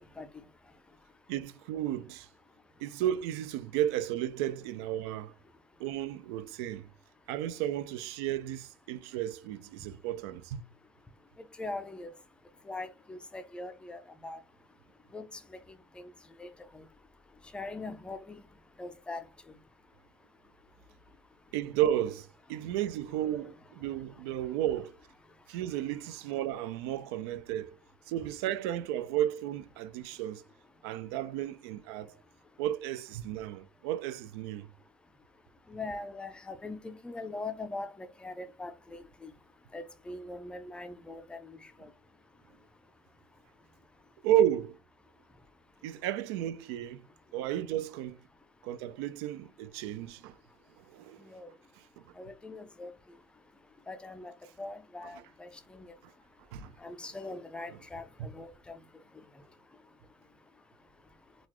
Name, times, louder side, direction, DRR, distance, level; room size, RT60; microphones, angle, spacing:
voice 1, 1.3-2.3 2.8-5.3 5.8-6.9 7.3-10.6 21.5-25.0 25.5-27.7 28.1-30.4 30.8-32.1 32.6-34.7 44.2-44.8 45.8-47.1 47.3-48.2 48.6-50.3 50.8-51.2 52.0-52.1 56.0-56.1 56.5-56.7 58.2-58.3, right 12 dB, 75° right, 0.4 m, -33 dB
voice 2, 11.6-12.1 12.7-14.4 15.1-15.3 15.5-15.6 16.0-16.1 16.4-16.5 16.7-16.8 17.5-18.4 18.8-19.2 35.7-39.3 39.7-41.6 51.3-51.5 52.2-52.9 53.9-54.3 54.6-55.9 56.8-58.8, left 2 dB, 5° left, 0.4 m, -41 dB
3.9 x 2.3 x 3.0 m
cardioid pair, 140°, 13 cm